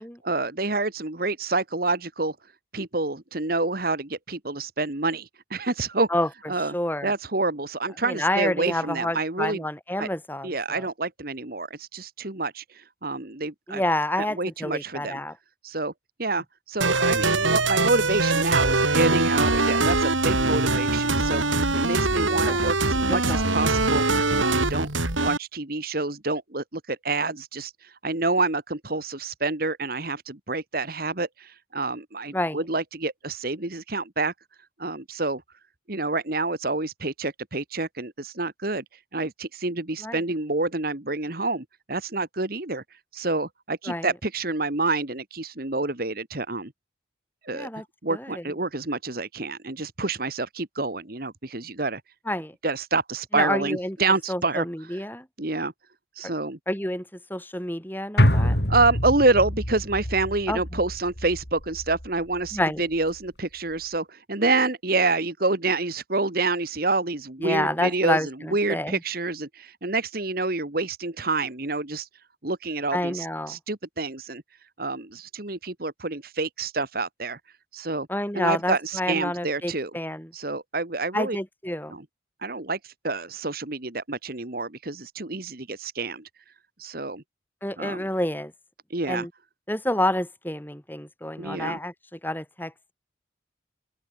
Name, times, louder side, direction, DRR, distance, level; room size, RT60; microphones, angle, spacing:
voice 1, 0.2-2.4 2.7-6.1 6.5-6.7 7.0-9.6 10.0-10.1 10.4-13.8 14.2-15.2 15.6-15.9 16.2-21.4 21.7-24.0 24.4-24.9 25.2-34.3 34.8-35.4 35.9-38.8 39.1-42.8 43.1-46.7 47.4-47.7 48.0-52.0 52.6-54.7 55.4-55.7 56.2-56.6 58.2-72.1 72.4-74.4 74.8-77.4 77.7-78.1 78.3-79.9 80.3-81.4 81.9-82.0 82.4-86.3 86.8-87.2 87.8-88.0 88.9-89.3 91.4-91.8, right 3 dB, 50° right, 1.8 m, -28 dB
voice 2, 6.7-7.1 8.0-10.9 13.7-15.3 22.3-22.6 23.1-23.5 32.3-32.6 40.0-40.2 43.9-44.1 47.5-47.8 48.1-48.4 52.3-52.5 53.3-54.0 54.3-55.3 56.2-56.3 56.7-57.0 57.3-58.6 60.5-60.8 62.5-62.8 67.4-69.0 72.9-73.6 78.1-80.3 81.1-82.0 87.6-88.5 89.1-89.3 89.7-91.9 92.2-92.9, left 1 dB, 10° left, 5.9 m, -28 dB
sound 1, 16.8-25.4, right 3 dB, 90° right, 5.3 m, -22 dB
sound 2, 58.2-62.6 63.0-63.1, equal, 60° left, 6.0 m, -26 dB
open air
head